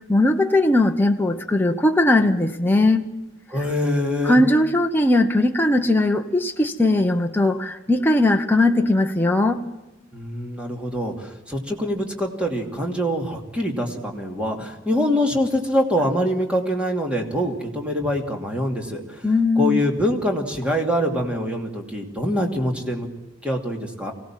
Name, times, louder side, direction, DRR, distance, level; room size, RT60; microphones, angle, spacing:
voice 1, 0.1-3.1 4.2-9.6 19.2-19.8, left 2 dB, 10° left, 3 dB, 1.0 m, -19 dB
voice 2, 3.5-4.4 10.1-19.3 19.6-23.1 23.4-24.1, equal, 5° right, 2 dB, 2.7 m, -24 dB
24.0 x 17.5 x 7.4 m, 1.0 s
head